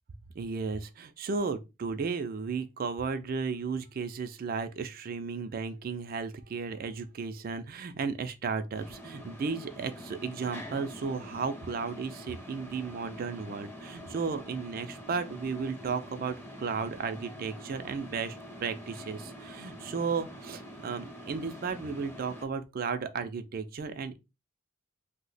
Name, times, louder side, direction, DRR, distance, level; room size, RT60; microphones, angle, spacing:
voice 1, 0.3-24.2, right 5 dB, 45° right, 0.4 m, -34 dB
sound 1, 8.7-22.5, equal, 10° left, 0.6 m, -45 dB
2.7 x 2.1 x 3.9 m
head